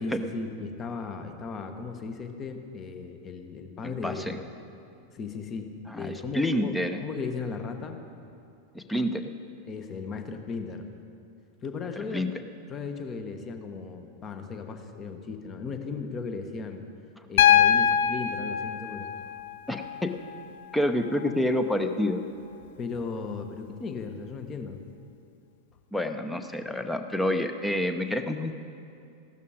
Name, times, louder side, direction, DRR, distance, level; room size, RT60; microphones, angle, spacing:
voice 1, 0.0-4.4 5.1-6.7 7.0-8.0 9.7-10.9 11.6-12.3 12.7-16.8 17.3-19.1 22.8-24.8, left 4 dB, 25° left, 7 dB, 1.2 m, -36 dB
voice 2, 3.8-4.4 5.9-7.0 8.7-9.3 12.1-12.3 19.7-20.1 20.7-22.2 25.9-28.5, left 1 dB, 5° left, 7 dB, 0.8 m, -28 dB
Piano, 17.4-21.4 22.9-23.0, left 9 dB, 55° left, 0.4 m, -24 dB
15.0 x 12.5 x 5.0 m, 2.6 s
figure-of-eight pair, 90°, 0 cm